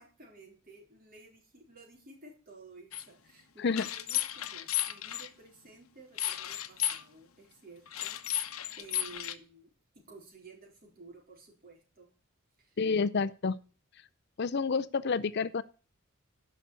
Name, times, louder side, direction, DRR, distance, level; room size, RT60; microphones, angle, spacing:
voice 1, 0.0-12.1 12.6-12.8, right 3 dB, 45° right, 0 dB, 4.3 m, -54 dB
sound 1, 2.9-3.0 3.7-5.3 6.2-7.0 7.9-9.3, left 12 dB, 85° left, 0.9 m, -34 dB
voice 2, 12.8-13.6 14.4-15.6, left 5 dB, 50° left, 15 dB, 0.5 m, -29 dB
10.5 x 6.0 x 8.2 m, 0.36 s
head